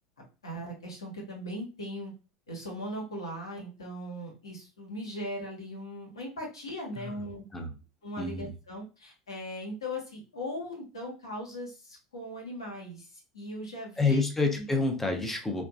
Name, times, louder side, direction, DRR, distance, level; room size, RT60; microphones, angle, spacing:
voice 1, 0.4-2.1 2.5-7.4 8.0-14.2 14.6-14.7, equal, 85° left, -2 dB, 1.1 m, -39 dB
voice 2, 7.0-7.7 8.2-8.5 14.0-15.7, left 3 dB, 10° left, 3 dB, 0.7 m, -29 dB
3.5 x 2.3 x 2.3 m, 0.33 s
hypercardioid pair, 80°, 3 cm